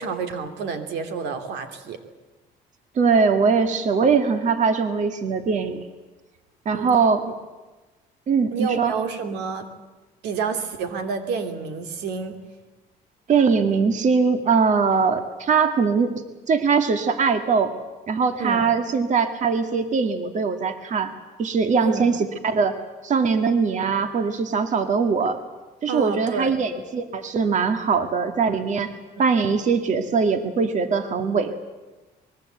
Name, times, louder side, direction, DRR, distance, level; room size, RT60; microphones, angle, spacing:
voice 1, 0.0-2.0 6.7-6.9 8.5-9.7 10.2-12.4 18.4-18.7 21.8-22.1 25.9-26.5, right 5 dB, 85° right, 7 dB, 2.5 m, -29 dB
voice 2, 3.0-5.8 6.7-7.2 8.3-8.9 13.3-16.2 16.5-17.7 18.1-21.1 21.4-22.8 23.0-25.4 25.8-28.9 29.2-31.6, right 5 dB, 45° right, 7 dB, 2.1 m, -21 dB
24.5 x 21.5 x 8.0 m, 1.2 s
cardioid pair, 110°, 17 cm